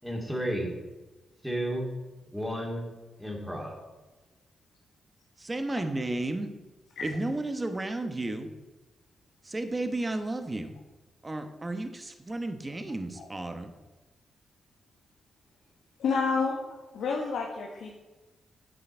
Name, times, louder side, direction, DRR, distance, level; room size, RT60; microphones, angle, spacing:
voice 1, 0.0-0.7 1.4-1.9 2.3-2.9 3.2-3.8, equal, ahead, -1 dB, 2.7 m, -32 dB
voice 2, 5.4-6.5 7.0-8.5 9.4-10.7 11.2-13.7, right 2 dB, 20° right, 7 dB, 1.1 m, -33 dB
voice 3, 16.0-16.6 16.9-18.0, left 5 dB, 85° left, -2 dB, 1.5 m, -29 dB
10.5 x 7.7 x 4.5 m, 1.2 s
cardioid pair, 90°, 0 cm